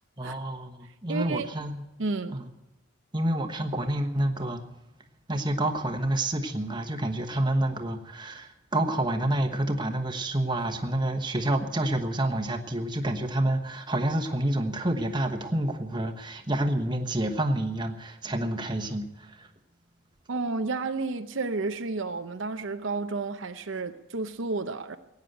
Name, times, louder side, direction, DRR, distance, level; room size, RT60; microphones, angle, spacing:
voice 1, 0.2-1.8 2.3-2.5 3.1-4.6 5.3-19.5, right 1 dB, 20° right, 1.2 m, -28 dB
voice 2, 1.1-1.5 2.0-2.4 20.3-25.0, right 3 dB, 70° right, 0.7 m, -31 dB
17.0 x 9.6 x 7.9 m
head